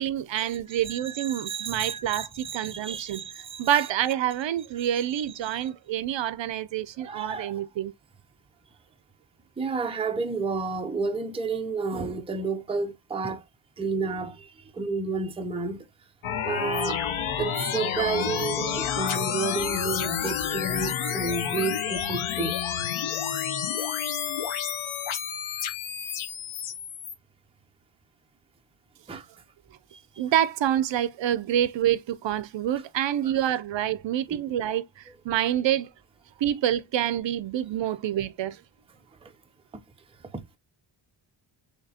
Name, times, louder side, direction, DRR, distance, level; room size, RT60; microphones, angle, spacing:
voice 1, 0.0-3.2 3.6-7.9 30.2-35.9 36.4-38.6, right 11 dB, 65° right, 0.5 m, -27 dB
voice 2, 0.9-3.9 7.0-7.7 9.6-13.4 13.8-15.9 16.4-17.0 17.4-22.6 29.1-29.3 29.9-30.0 34.3-34.4 39.2-39.3 39.7-39.8 40.3-40.6, right 4 dB, 10° right, 0.5 m, -31 dB
sound 1, 16.2-27.1, left 8 dB, 75° left, 0.9 m, -29 dB
6.5 x 2.8 x 2.7 m
wide cardioid pair, 150°, 49 cm